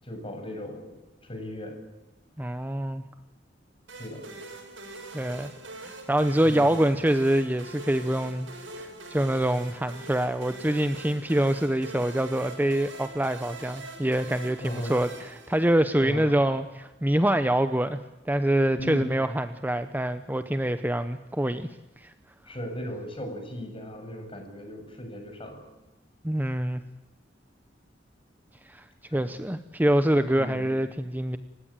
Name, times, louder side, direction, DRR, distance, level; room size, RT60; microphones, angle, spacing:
voice 1, 0.0-0.9 1.3-1.8 3.9-4.2 6.4-6.8 14.6-14.9 16.0-16.3 18.8-19.1 22.5-25.6 29.1-29.3 30.3-30.7, left 1 dB, 30° left, 4 dB, 7.4 m, -37 dB
voice 2, 2.4-3.0 5.1-5.5 5.8-8.5 8.8-21.7 22.0-22.1 26.2-26.8 28.7-28.8 29.1-31.4, right 1 dB, 10° right, 10 dB, 0.8 m, -25 dB
sound 1, 3.9-16.1, right 2 dB, 85° right, 7.4 m, -43 dB
29.0 x 16.5 x 8.9 m, 1.0 s
head